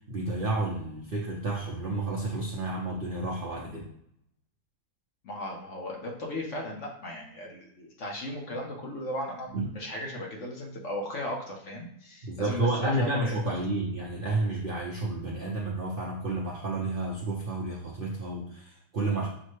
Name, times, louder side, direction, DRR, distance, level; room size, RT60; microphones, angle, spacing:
voice 1, 0.1-3.8 9.5-9.7 12.2-19.3, right 2 dB, 60° right, -3 dB, 0.6 m, -31 dB
voice 2, 5.2-13.5, left 1 dB, 55° left, 0 dB, 1.0 m, -36 dB
6.4 x 2.1 x 3.0 m, 0.73 s
omnidirectional pair, 1.7 m